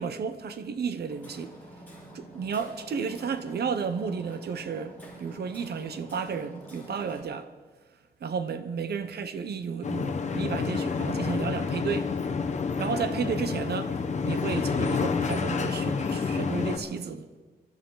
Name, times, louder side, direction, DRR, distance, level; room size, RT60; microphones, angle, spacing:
voice 1, 0.0-1.5 2.1-7.5 8.2-12.1 12.8-14.0 14.2-17.3, right 6 dB, 75° right, 0.9 m, -32 dB
Hammer, 1.1-7.2, right 1 dB, 10° left, 5.7 m, -47 dB
sound 1, 9.8-16.8, left 5 dB, 45° left, 1.2 m, -29 dB
24.5 x 13.0 x 4.0 m
wide cardioid pair, 160°, 17 cm